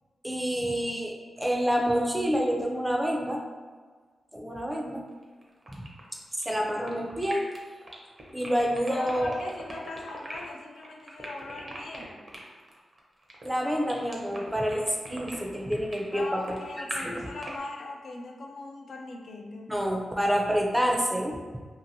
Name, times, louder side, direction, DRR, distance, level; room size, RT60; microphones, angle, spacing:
voice 1, 0.2-3.4 4.3-5.0 5.8-5.9 6.5-7.4 8.3-9.3 13.4-17.2 19.7-21.4, equal, 10° right, 0 dB, 0.5 m, -28 dB
sound 1, 5.1-17.5, right 1 dB, 50° right, 0.6 m, -41 dB
voice 2, 8.9-12.2 16.1-19.7, left 2 dB, 75° left, 1 dB, 0.3 m, -40 dB
2.7 x 2.5 x 2.6 m, 1.5 s
cardioid pair, 55°, 0 cm